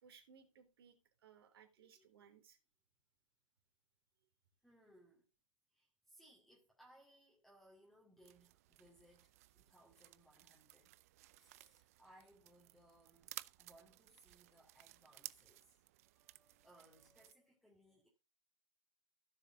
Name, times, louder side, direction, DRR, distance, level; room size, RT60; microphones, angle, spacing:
voice 1, 0.0-2.6, right 7 dB, 45° right, 3.2 m, -64 dB
voice 2, 1.8-2.4 4.6-5.3 5.7-11.0 11.3-13.3 13.6-18.1, right 1 dB, ahead, 2.3 m, -67 dB
sound 1, 8.2-17.3, right 16 dB, 30° right, 0.4 m, -57 dB
16.0 x 6.7 x 2.6 m
figure-of-eight pair, 125°, 17 cm